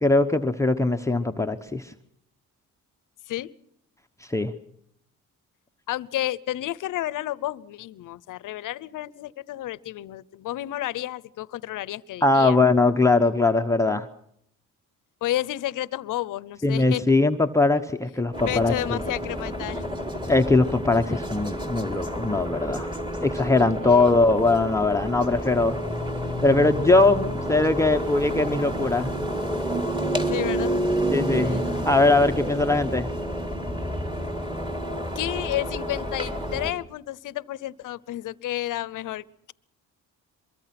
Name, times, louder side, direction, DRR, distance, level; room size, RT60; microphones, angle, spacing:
voice 1, 0.0-1.9 4.2-4.5 12.2-14.1 16.6-19.0 20.3-22.9 23.2-25.8 26.4-29.1 31.1-33.1, left 3 dB, 10° left, 4 dB, 0.9 m, -21 dB
voice 2, 5.9-12.6 15.2-17.0 18.4-20.0 23.8-24.1 30.3-30.7 31.4-31.9 35.1-39.5, left 14 dB, 70° left, 20 dB, 0.8 m, -31 dB
sound 1, 18.3-36.7, equal, 15° right, 3.2 m, -29 dB
23.5 x 23.0 x 6.0 m, 0.69 s
cardioid pair, 115°, 33 cm